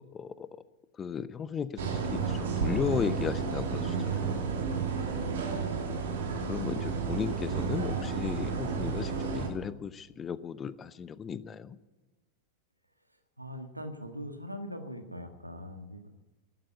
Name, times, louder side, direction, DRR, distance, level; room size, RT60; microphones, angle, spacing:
voice 1, 0.1-0.5 1.0-4.5 6.5-11.8, left 7 dB, 20° left, 16 dB, 0.8 m, -35 dB
sound 1, 1.8-9.5, right 5 dB, 60° right, 2.6 m, -32 dB
voice 2, 5.2-5.6 13.4-16.1, equal, 85° right, 6 dB, 1.6 m, -41 dB
12.5 x 12.0 x 8.2 m, 1.1 s
figure-of-eight pair, 90°, 0 cm